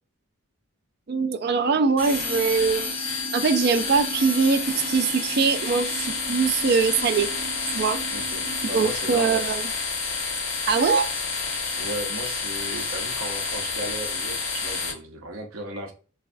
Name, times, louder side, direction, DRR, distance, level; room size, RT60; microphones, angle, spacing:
voice 1, 1.1-2.9 3.3-7.3 7.7-8.0 8.7-9.6 10.7-11.1, right 5 dB, 50° right, 0.3 m, -22 dB
sound 1, 2.0-14.9, left 4 dB, 85° left, 1.0 m, -29 dB
sound 2, 2.0-8.8, right 7 dB, 10° left, 0.7 m, -40 dB
voice 2, 8.1-9.6 11.7-15.9, right 1 dB, 80° right, 0.7 m, -35 dB
3.1 x 2.3 x 2.5 m
head